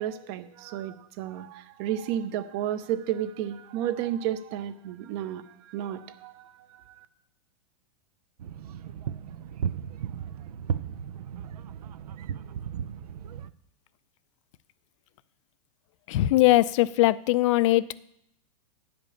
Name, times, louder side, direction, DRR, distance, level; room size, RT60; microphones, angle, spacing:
voice 1, 0.0-7.1, right 11 dB, 45° right, 12 dB, 0.7 m, -32 dB
sound 1, 8.4-13.5, right 8 dB, 90° right, 0.5 m, -35 dB
voice 2, 16.1-18.0, left 16 dB, 55° left, 18 dB, 0.4 m, -21 dB
9.7 x 5.2 x 7.1 m, 0.76 s
hypercardioid pair, 140°, 19 cm